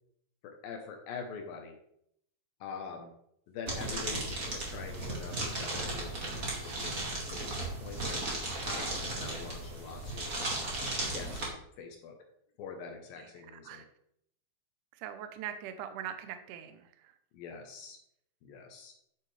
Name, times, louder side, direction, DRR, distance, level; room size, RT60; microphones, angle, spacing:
voice 1, 0.4-1.8 2.6-3.1 3.5-10.3 11.0-11.4 11.8-12.2 12.6-13.8 17.3-18.0 18.4-18.9, left 5 dB, 75° left, 3 dB, 2.6 m, -44 dB
sound 1, 3.7-11.5, right 2 dB, 25° right, 2.0 m, -36 dB
voice 2, 15.0-16.8, right 10 dB, 70° right, 8 dB, 2.1 m, -41 dB
10.5 x 7.4 x 3.3 m, 0.73 s
omnidirectional pair, 4.4 m